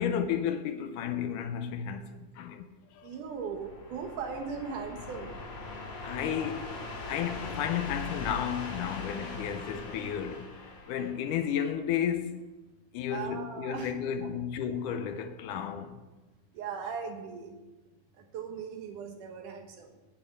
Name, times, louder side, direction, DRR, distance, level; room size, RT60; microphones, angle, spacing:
voice 1, 0.0-2.7 2.9-3.1 6.0-10.6 10.9-12.5 12.9-16.1, left 8 dB, 80° left, 2.2 m, -33 dB
voice 2, 3.0-5.4 13.1-13.9 14.2-14.3 15.5-15.6 16.5-17.6 18.1-19.9, right 6 dB, 75° right, 2.7 m, -39 dB
sound 1, 3.3-11.8, left 2 dB, 55° left, 3.2 m, -41 dB
9.1 x 7.7 x 8.4 m
omnidirectional pair, 3.7 m